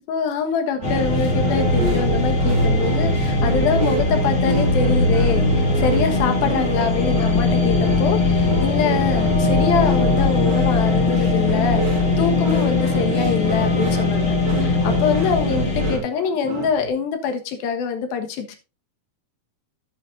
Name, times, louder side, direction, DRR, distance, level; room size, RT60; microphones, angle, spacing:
voice 1, 0.1-11.9 12.2-18.6, left 6 dB, 75° left, 6 dB, 3.2 m, -24 dB
sound 1, 0.8-16.0, left 2 dB, 35° left, 1.2 m, -20 dB
sound 2, 0.8-16.9, right 3 dB, 45° right, 1.5 m, -31 dB
13.0 x 8.3 x 2.6 m, 0.29 s
omnidirectional pair, 4.4 m